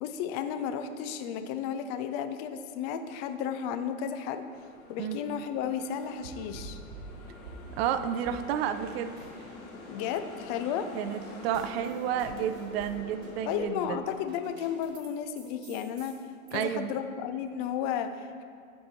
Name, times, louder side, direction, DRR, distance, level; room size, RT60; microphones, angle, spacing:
voice 1, 0.0-4.4 4.9-6.8 9.9-10.9 13.5-16.2 16.5-18.4, left 8 dB, 30° left, 8 dB, 0.4 m, -33 dB
sound 1, 4.5-13.7, left 2 dB, 75° left, 1.5 m, -47 dB
sound 2, 6.2-7.9 8.3-9.7 9.9-15.1 15.4-16.5, right 4 dB, 65° right, 1.9 m, -49 dB
voice 2, 7.8-9.1 10.9-14.0 16.5-16.9, right 9 dB, 45° right, 11 dB, 0.5 m, -31 dB
9.1 x 4.6 x 4.3 m, 2.2 s
hypercardioid pair, 105°, 43 cm